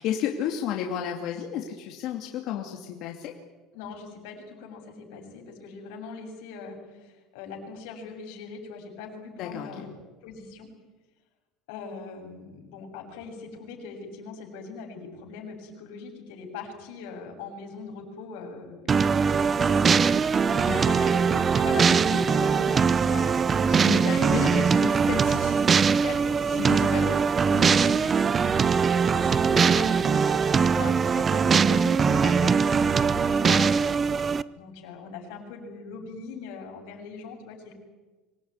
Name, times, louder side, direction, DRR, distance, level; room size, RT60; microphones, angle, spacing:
voice 1, 0.0-3.3 9.4-9.8 20.7-21.0 23.7-25.6 26.5-27.9 33.1-33.4, left 9 dB, 60° left, 2 dB, 2.6 m, -32 dB
voice 2, 3.7-9.9 10.2-10.7 11.7-20.0 20.4-24.2 26.0-27.1 27.8-32.7 33.4-34.2 34.5-37.7, left 5 dB, 85° left, 2 dB, 7.6 m, -41 dB
sound 1, 18.9-34.4, right 6 dB, 25° right, 0.7 m, -22 dB
25.5 x 18.0 x 9.7 m, 1.2 s
cardioid pair, 135°, 0 cm